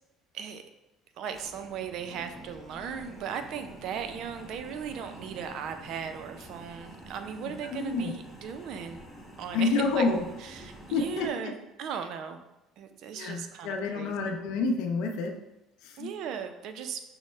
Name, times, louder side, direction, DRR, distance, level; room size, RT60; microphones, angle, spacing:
voice 1, 1.2-9.0 9.4-10.1 10.4-12.4 12.8-14.3 16.0-17.0, right 7 dB, 65° right, 8 dB, 0.4 m, -37 dB
sound 1, 1.3-11.3, right 1 dB, ahead, 1.1 m, -48 dB
voice 2, 7.7-8.1 9.5-10.2 10.9-11.3 13.1-15.3 15.8-16.1, left 3 dB, 75° left, 4 dB, 0.5 m, -28 dB
6.1 x 2.1 x 3.2 m, 0.92 s
supercardioid pair, 90°, 0 cm